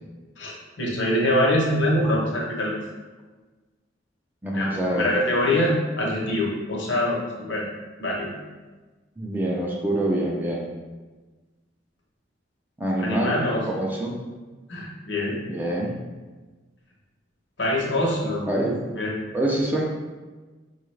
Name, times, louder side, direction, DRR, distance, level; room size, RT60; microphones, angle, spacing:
voice 1, 0.4-2.8 4.5-7.6 8.0-8.3 13.0-13.6 14.7-15.4 17.6-19.2, left 1 dB, 70° left, -3 dB, 0.9 m, -24 dB
voice 2, 4.4-5.1 9.2-10.6 12.8-13.4 13.7-14.2 15.4-16.0 18.5-18.8 19.3-19.8, right 1 dB, 10° right, -3 dB, 0.4 m, -25 dB
4.5 x 2.4 x 3.2 m, 1.3 s
head